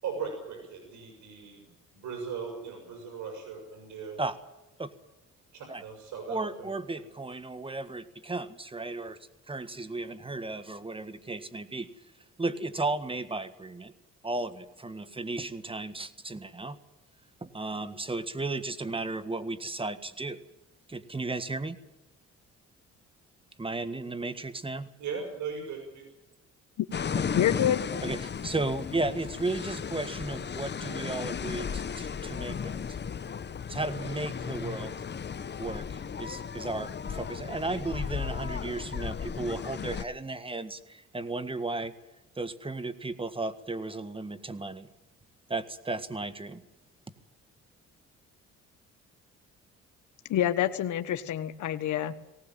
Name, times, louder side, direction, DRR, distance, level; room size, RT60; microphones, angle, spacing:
voice 1, 0.0-4.2 5.5-7.0 25.0-25.8, right 6 dB, 75° right, 3 dB, 6.7 m, -38 dB
voice 2, 6.3-9.2 9.5-11.9 12.4-13.9 14.2-16.8 17.4-20.4 20.9-21.8 23.6-24.9 28.0-33.0 33.7-34.9 35.6-41.9 42.3-44.9 45.5-46.6, right 2 dB, 15° right, 12 dB, 1.7 m, -34 dB
sound 1, 26.9-40.0, left 7 dB, 35° left, 0.9 m, -35 dB
voice 3, 27.3-27.9 50.3-52.1, left 11 dB, 75° left, 8 dB, 1.3 m, -27 dB
20.0 x 18.0 x 9.1 m, 0.98 s
cardioid pair, 90°, 30 cm